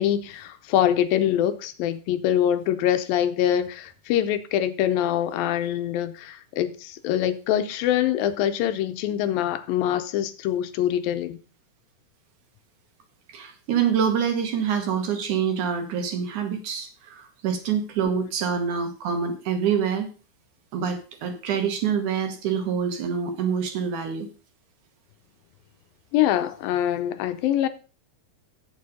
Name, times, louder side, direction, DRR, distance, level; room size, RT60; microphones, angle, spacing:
voice 1, 0.0-11.4 18.1-18.2 26.1-27.7, left 11 dB, 80° left, 2.4 m, -24 dB
voice 2, 13.3-20.1 20.7-24.3, right 7 dB, 65° right, 2.5 m, -26 dB
9.2 x 7.1 x 5.3 m
omnidirectional pair, 4.3 m